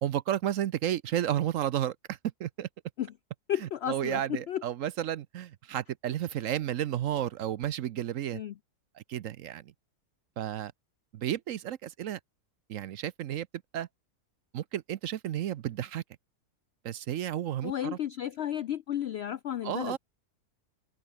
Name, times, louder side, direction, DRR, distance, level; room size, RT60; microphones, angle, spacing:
voice 1, 0.0-2.7 3.6-8.4 8.9-9.6 10.4-10.7 11.1-12.2 12.7-13.5 13.7-13.9 14.5-16.0 16.8-18.0 19.6-20.0, right 11 dB, 65° right, 0.9 m, -32 dB
voice 2, 3.5-4.6 8.3-8.5 17.6-20.0, left 10 dB, 70° left, 0.6 m, -33 dB
open air
omnidirectional pair, 1.6 m